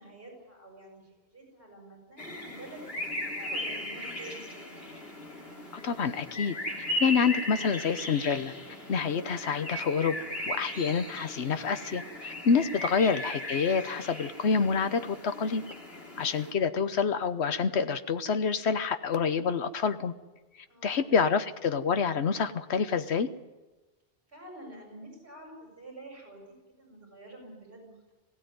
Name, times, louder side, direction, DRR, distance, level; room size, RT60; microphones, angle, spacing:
voice 1, 0.0-5.0 20.7-21.1 24.3-26.4 26.8-28.1, right 1 dB, 65° right, 0 dB, 7.5 m, -48 dB
sound 1, 2.2-16.5, left 1 dB, 65° left, 3.5 m, -37 dB
voice 2, 5.8-6.6 7.0-8.5 8.9-10.2 10.5-15.6 16.2-20.1 20.8-23.3, left 5 dB, 85° left, 10 dB, 1.3 m, -27 dB
20.5 x 16.0 x 9.4 m, 1.2 s
omnidirectional pair, 1.1 m